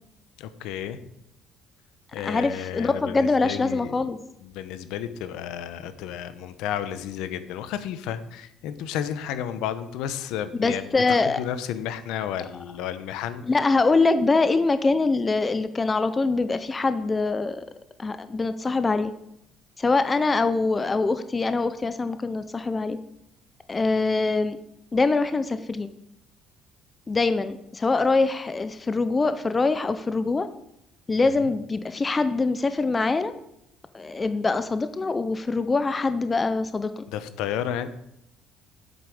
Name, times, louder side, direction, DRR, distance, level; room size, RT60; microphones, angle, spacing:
voice 1, 0.4-1.0 2.1-4.1 4.4-13.4 31.4-31.5 37.1-37.9, left 10 dB, 75° left, 12 dB, 0.9 m, -32 dB
voice 2, 2.2-4.2 10.5-11.4 13.5-17.6 18.0-19.1 19.8-23.0 23.7-24.6 24.9-25.9 27.1-30.5 31.1-33.3 33.9-37.0, left 3 dB, 15° left, 11 dB, 0.4 m, -24 dB
8.4 x 8.2 x 6.3 m, 0.78 s
cardioid pair, 175°, 0 cm